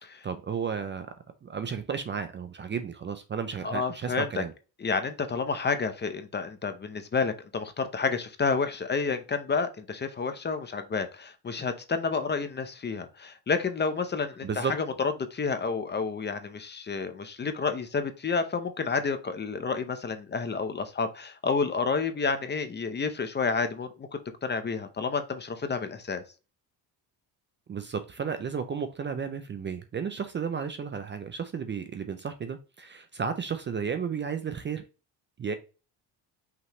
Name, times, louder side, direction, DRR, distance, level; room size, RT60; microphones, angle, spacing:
voice 1, 0.2-1.1 1.4-4.5 14.4-14.8 27.7-34.8 35.4-35.5, right 6 dB, 30° right, 9 dB, 0.5 m, -33 dB
voice 2, 3.6-4.4 4.8-24.1 24.4-26.2, left 5 dB, 25° left, 9 dB, 0.6 m, -30 dB
5.7 x 3.1 x 3.0 m, 0.32 s
cardioid pair, 110°, 41 cm